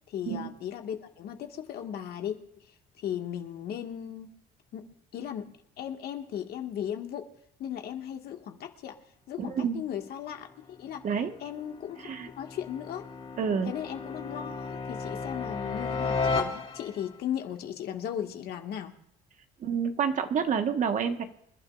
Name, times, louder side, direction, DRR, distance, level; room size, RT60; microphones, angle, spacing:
voice 1, 0.1-2.4 3.0-4.3 4.7-4.8 5.1-5.5 5.8-7.3 7.6-9.0 9.3-11.0 11.4-12.1 12.4-13.1 13.7-19.0, left 9 dB, 70° left, 4 dB, 1.9 m, -36 dB
voice 2, 9.4-9.8 11.0-11.3 12.0-12.3 13.4-13.7 19.6-21.2, right 7 dB, 50° right, 6 dB, 1.5 m, -28 dB
sound 1, 10.7-17.2, left 4 dB, 35° left, 2.8 m, -34 dB
27.5 x 12.0 x 2.5 m, 0.73 s
cardioid pair, 110°, 17 cm